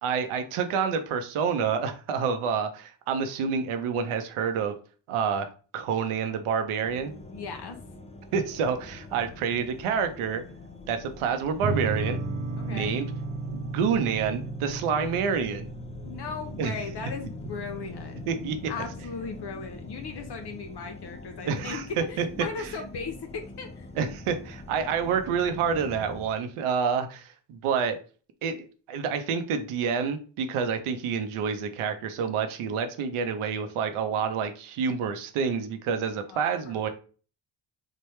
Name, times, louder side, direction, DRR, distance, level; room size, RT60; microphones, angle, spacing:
voice 1, 0.0-4.7 5.1-5.5 5.7-7.1 8.3-10.4 10.9-12.2 12.7-13.1 13.5-15.7 16.6-16.7 18.3-18.6 21.5-21.8 22.2-22.3 22.6-22.7 24.0-28.0 28.4-36.9, right 6 dB, 85° right, 8 dB, 0.7 m, -28 dB
sound 1, 6.8-26.3, left 3 dB, 15° left, 0.4 m, -44 dB
voice 2, 7.3-7.8 12.6-13.2 16.0-18.2 18.7-23.9 36.3-36.9, left 5 dB, 55° left, 5 dB, 0.6 m, -37 dB
sound 2, 11.6-20.6, right 3 dB, 40° right, 0.5 m, -36 dB
3.1 x 2.2 x 3.1 m, 0.37 s
supercardioid pair, 60°, 49 cm